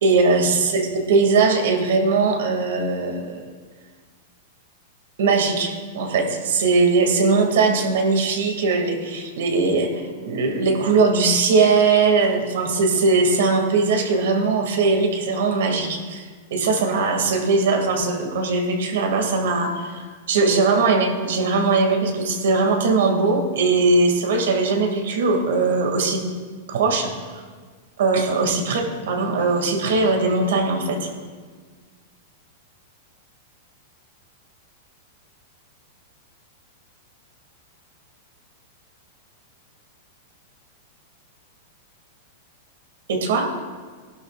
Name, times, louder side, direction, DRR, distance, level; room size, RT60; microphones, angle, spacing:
voice 1, 0.0-3.5 5.2-16.2 16.5-26.2 26.7-27.4 28.0-31.1 43.1-43.5, right 4 dB, 75° right, 2 dB, 2.4 m, -20 dB
20.5 x 11.5 x 2.5 m, 1.5 s
supercardioid pair, 150°, 0 cm